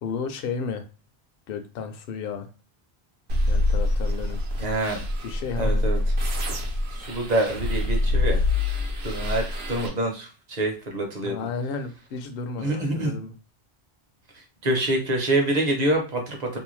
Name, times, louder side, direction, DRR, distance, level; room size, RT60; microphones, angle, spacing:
voice 1, 0.0-0.9 1.5-2.5 3.5-4.4 5.2-5.8 11.2-13.3, left 5 dB, 70° left, 7 dB, 0.7 m, -33 dB
sound 1, 3.3-9.9, left 2 dB, 85° right, 0.9 m, -25 dB
voice 2, 4.6-5.1 5.6-6.0 6.9-8.4 9.0-11.4 12.6-13.1 14.3-16.6, right 1 dB, 45° right, 2 dB, 0.8 m, -26 dB
2.7 x 2.2 x 3.1 m, 0.33 s
omnidirectional pair, 1.0 m